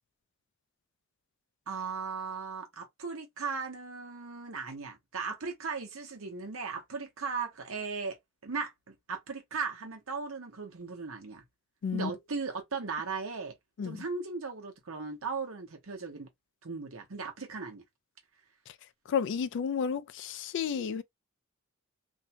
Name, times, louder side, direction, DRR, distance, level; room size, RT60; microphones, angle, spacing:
voice 1, 1.7-11.4 11.9-13.5 13.8-16.3 16.6-17.8, right 4 dB, 70° right, 0.9 m, -37 dB
voice 2, 19.1-21.0, left 7 dB, 60° left, 0.3 m, -31 dB
2.6 x 2.2 x 2.7 m
head